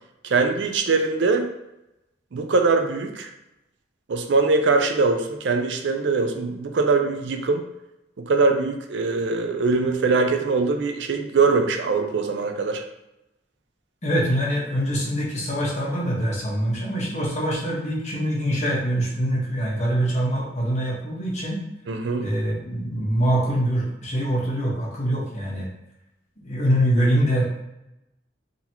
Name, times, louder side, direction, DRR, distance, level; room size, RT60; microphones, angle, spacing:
voice 1, 0.2-1.5 2.3-3.3 4.1-7.6 8.2-12.8 21.9-22.2, right 4 dB, 70° right, 5 dB, 0.4 m, -22 dB
voice 2, 14.0-21.6 22.2-25.7 26.4-27.6, equal, 40° left, -5 dB, 1.1 m, -24 dB
3.9 x 2.9 x 2.8 m, 0.90 s
head